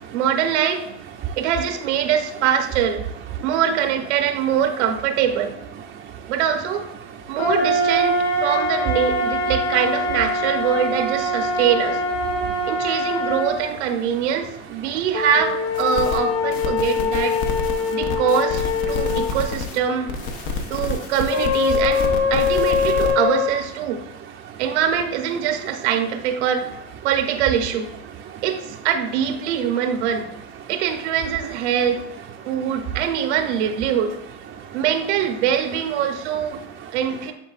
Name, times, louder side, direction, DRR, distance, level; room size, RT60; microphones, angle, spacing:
voice 1, 0.1-0.9 1.4-3.0 3.4-5.5 6.3-6.9 7.3-12.0 12.7-17.4 17.9-20.1 20.7-24.0 24.6-26.7 27.0-27.9 28.4-30.3 30.7-32.0 32.5-34.2 34.7-36.6 36.9-37.3, right 8 dB, 85° right, 8 dB, 0.8 m, -23 dB
voice 2, 5.9-6.3 7.3-7.4 12.3-12.7 14.3-14.4 14.8-15.0 17.8-18.2 18.9-19.4 20.4-21.1 24.4-24.6 28.3-28.4 30.6-30.7 32.4-32.8 34.6-34.8 36.5-37.0, right 8 dB, 30° right, 0 dB, 0.5 m, -37 dB
sound 1, 7.4-13.6 15.1-19.4 21.3-23.5, left 3 dB, 40° left, 1.5 m, -23 dB
sound 2, 15.8-16.2 16.5-19.8 20.1-23.1, left 4 dB, 65° left, 1.0 m, -29 dB
9.8 x 4.0 x 2.4 m, 0.87 s
supercardioid pair, 120°, 34 cm